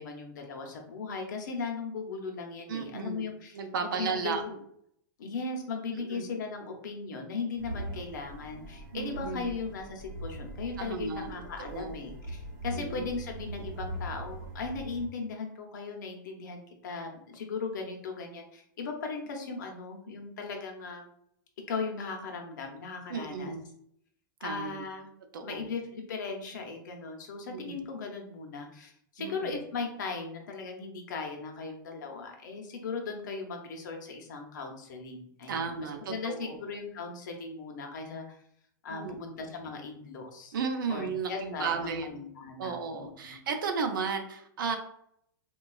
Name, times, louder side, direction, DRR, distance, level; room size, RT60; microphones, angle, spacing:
voice 1, 0.0-4.6 5.2-21.0 21.7-23.5 24.4-25.1 25.4-38.4 38.8-40.6 40.9-43.4, left 4 dB, 60° left, 2 dB, 0.7 m, -38 dB
voice 2, 2.7-4.4 5.9-6.2 8.9-9.5 10.8-11.9 12.7-13.1 23.1-23.6 24.4-24.8 25.3-25.7 27.5-27.8 29.2-29.5 35.5-36.6 38.9-39.3 40.5-42.1 42.6-44.8, right 5 dB, 80° right, 5 dB, 0.6 m, -34 dB
sound 1, 7.6-15.1, right 1 dB, 45° right, 0.8 m, -41 dB
3.9 x 2.3 x 2.3 m, 0.71 s
supercardioid pair, 180°, 11 cm